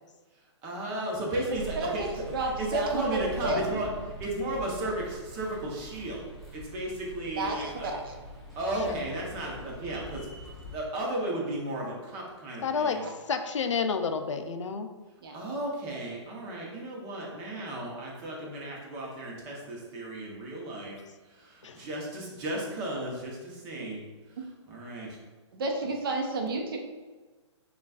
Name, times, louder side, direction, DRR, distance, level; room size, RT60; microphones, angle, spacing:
voice 1, 0.6-6.3 6.5-7.9 8.6-10.3 10.7-13.0 15.3-21.0 21.2-24.0 24.3-25.2, right 1 dB, 20° right, -2 dB, 0.8 m, -34 dB
sound 1, 1.5-10.8, equal, ahead, 0.6 m, -43 dB
voice 2, 1.7-2.1 2.3-3.6 7.4-8.0 13.0-13.1 15.2-15.3 25.5-26.8, right 3 dB, 50° right, 2 dB, 0.7 m, -31 dB
voice 3, 12.6-14.9 21.6-21.8, left 5 dB, 75° left, 7 dB, 0.5 m, -30 dB
6.6 x 2.4 x 2.4 m, 1.3 s
hypercardioid pair, 155°, 16 cm